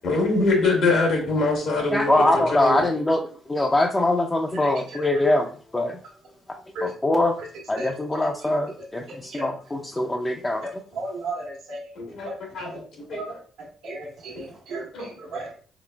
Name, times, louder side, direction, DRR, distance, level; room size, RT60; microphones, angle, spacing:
voice 1, 0.0-2.3 2.5-2.8 12.0-12.7 13.0-13.2 14.9-15.1, left 3 dB, 75° left, 1.6 m, -23 dB
voice 2, 1.9-6.0 6.8-7.4 7.7-10.7, left 1 dB, 20° left, 0.4 m, -23 dB
voice 3, 7.8-8.3 9.3-9.5 10.6-10.7 10.9-11.9 12.2-12.3 12.6-12.8 13.1-13.3 13.8-15.6, right 1 dB, 80° right, 1.1 m, -34 dB
4.1 x 3.8 x 2.2 m
cardioid pair, 90°, 0 cm